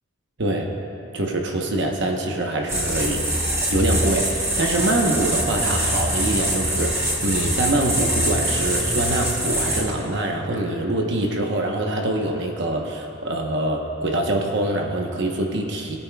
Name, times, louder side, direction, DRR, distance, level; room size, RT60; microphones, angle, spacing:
voice 1, 0.4-0.7 1.1-3.3 3.7-16.0, right 1 dB, 60° right, 1 dB, 1.0 m, -24 dB
sound 1, 2.7-9.8, equal, 15° right, 1.4 m, -24 dB
19.0 x 8.6 x 2.3 m, 2.9 s
head